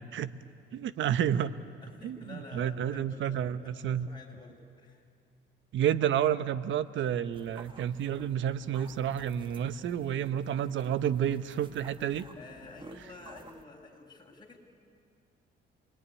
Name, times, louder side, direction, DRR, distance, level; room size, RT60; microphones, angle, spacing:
voice 1, 0.7-1.5 2.0-4.1 5.7-12.3, right 9 dB, 75° right, 13 dB, 1.0 m, -30 dB
voice 2, 1.8-5.0 12.3-14.6, left 3 dB, 20° left, -1 dB, 6.3 m, -50 dB
sound 1, 7.3-13.6, right 3 dB, 25° right, 2.0 m, -53 dB
27.5 x 21.5 x 9.9 m, 2.4 s
cardioid pair, 90°, 20 cm